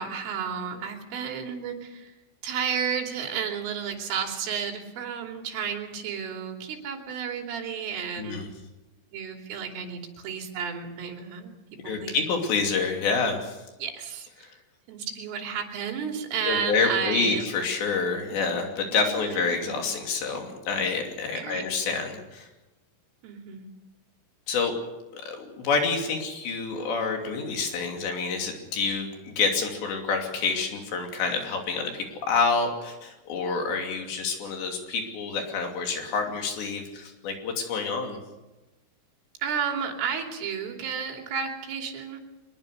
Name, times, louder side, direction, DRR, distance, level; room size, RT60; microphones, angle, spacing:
voice 1, 0.0-2.1 2.4-8.5 9.1-11.5 11.8-12.2 13.8-14.5 14.9-17.4 18.9-19.7 21.3-21.6 23.2-23.7 39.4-42.2, right 7 dB, 85° right, 3 dB, 5.4 m, -32 dB
voice 2, 8.2-8.5 11.8-13.6 14.4-14.5 16.4-22.5 24.5-24.8 25.1-38.2, left 4 dB, 65° left, 3 dB, 4.9 m, -28 dB
24.0 x 21.5 x 6.7 m, 1.1 s
omnidirectional pair, 5.6 m